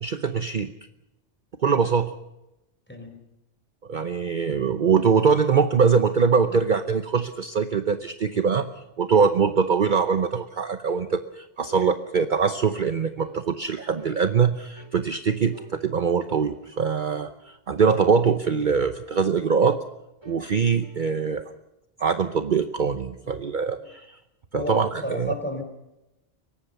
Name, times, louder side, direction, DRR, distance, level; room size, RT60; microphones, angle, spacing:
voice 1, 0.0-0.7 1.6-2.1 3.9-8.7 9.0-19.8 20.3-21.4 22.0-24.2 24.5-25.3, right 6 dB, 45° right, 9 dB, 1.0 m, -23 dB
sound 1, 9.3-9.6 10.1-10.3 10.9-11.1 11.6-11.9 12.4-12.7 13.2-13.4 14.0-14.2 14.8-15.0 15.5-15.8 16.3-16.6 17.1-17.3 17.9-18.1 18.6-18.9 19.4-19.7 20.2-20.5 20.8-21.2, right 3 dB, 20° right, 2.4 m, -47 dB
voice 2, 24.5-25.6, left 1 dB, 10° left, 5 dB, 4.6 m, -32 dB
23.0 x 18.0 x 6.9 m, 0.91 s
omnidirectional pair, 1.2 m